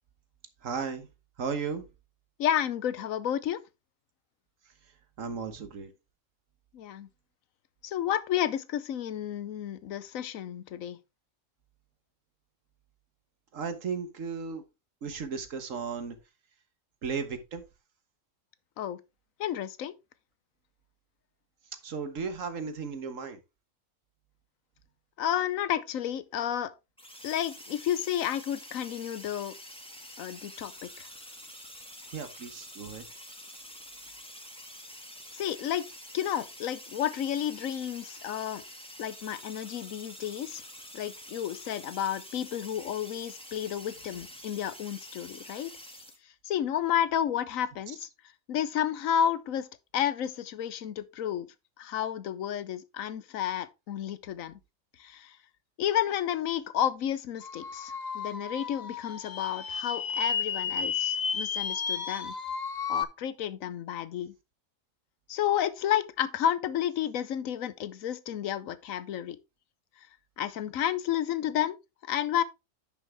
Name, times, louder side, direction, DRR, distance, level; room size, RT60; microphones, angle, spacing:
voice 1, 0.6-1.1 1.4-1.8 5.2-5.9 13.5-14.6 15.0-16.2 17.0-17.6 21.8-23.4 32.1-33.0, right 5 dB, 75° right, 1.6 m, -35 dB
voice 2, 2.4-3.6 6.7-7.1 7.8-11.0 18.8-19.0 19.4-19.9 25.2-26.7 27.2-29.5 30.2-31.1 35.4-35.9 36.1-38.6 39.0-40.6 40.9-45.8 46.4-48.1 48.5-49.7 49.9-51.5 51.8-54.6 55.0-55.3 55.8-62.3 62.9-64.3 65.3-69.4 70.4-71.8 72.0-72.4, left 10 dB, 80° left, 1.1 m, -31 dB
sound 1, 27.0-46.2, equal, 5° left, 1.6 m, -47 dB
sound 2, 57.4-63.0, left 6 dB, 40° left, 0.8 m, -32 dB
10.0 x 6.1 x 3.4 m
omnidirectional pair, 1.4 m